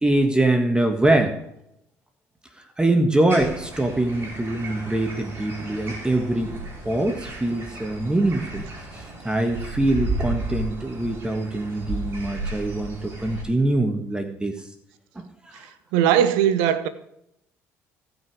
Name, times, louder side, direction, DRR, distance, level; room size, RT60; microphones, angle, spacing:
voice 1, 0.0-1.3 2.8-6.5 6.8-8.6 8.9-14.6 15.1-15.6, right 1 dB, 15° right, 1.6 m, -23 dB
sound 1, 3.3-13.4, right 2 dB, 40° right, 4.9 m, -34 dB
voice 2, 15.6-16.9, right 10 dB, 85° right, 0.9 m, -20 dB
16.5 x 6.3 x 4.8 m
supercardioid pair, 75°, 6 cm